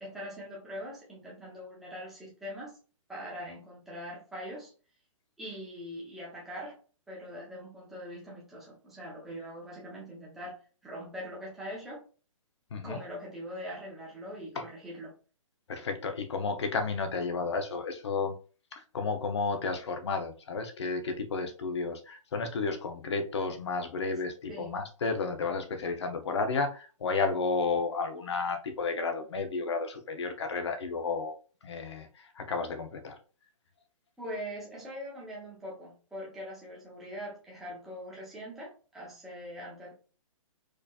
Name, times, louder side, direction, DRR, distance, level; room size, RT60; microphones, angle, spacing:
voice 1, 0.0-2.8 3.1-4.7 5.4-6.8 7.1-12.0 12.8-15.1 24.5-24.8 34.2-39.9, equal, ahead, 0.7 m, -42 dB
voice 2, 15.7-18.4 18.7-31.4 31.6-33.2, left 4 dB, 50° left, 0.8 m, -32 dB
4.6 x 2.8 x 2.3 m
hypercardioid pair, 170°, 18 cm